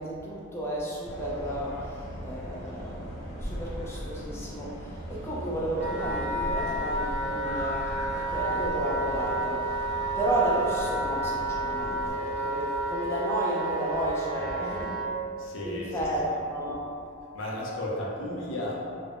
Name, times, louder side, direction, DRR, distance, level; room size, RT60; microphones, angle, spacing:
voice 1, 0.0-15.0 15.6-16.9, right 1 dB, 15° left, -5 dB, 0.4 m, -32 dB
sound 1, 1.0-12.1, equal, 35° left, 0.8 m, -39 dB
Wind instrument woodwind instrument, 5.8-15.1, right 2 dB, 70° right, 0.4 m, -31 dB
voice 2, 14.3-15.0 15.4-16.1 17.3-18.9, left 1 dB, 70° left, -4 dB, 0.5 m, -35 dB
3.4 x 2.0 x 2.4 m, 2.5 s
head